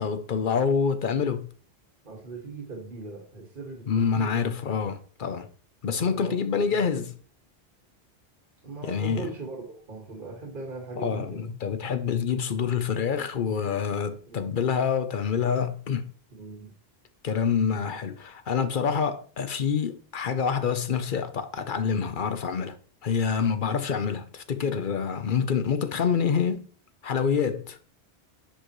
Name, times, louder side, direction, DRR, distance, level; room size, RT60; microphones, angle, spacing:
voice 1, 0.0-1.5 3.9-5.5 5.8-7.1 8.8-9.3 11.0-16.1 17.2-22.8 23.0-26.7 27.0-27.8, left 6 dB, 55° left, 0.9 m, -27 dB
voice 2, 2.0-4.4 6.0-7.0 8.6-11.5 14.3-14.6 16.3-16.7, right 3 dB, 55° right, 2.0 m, -39 dB
10.0 x 5.4 x 3.1 m
omnidirectional pair, 1.0 m